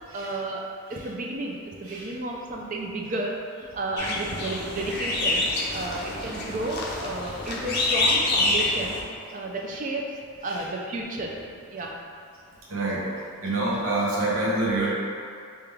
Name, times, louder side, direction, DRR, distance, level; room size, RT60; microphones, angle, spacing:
voice 1, 0.1-0.6 0.9-5.4 5.7-9.0 9.3-11.4 11.7-11.9, right 2 dB, 35° right, -1 dB, 0.4 m, -32 dB
sound 1, 4.0-9.0, left 2 dB, 50° left, 0.5 m, -27 dB
voice 2, 12.7-13.1 13.4-14.9, right 2 dB, 75° right, -6 dB, 0.9 m, -27 dB
3.4 x 2.8 x 3.4 m, 2.3 s
head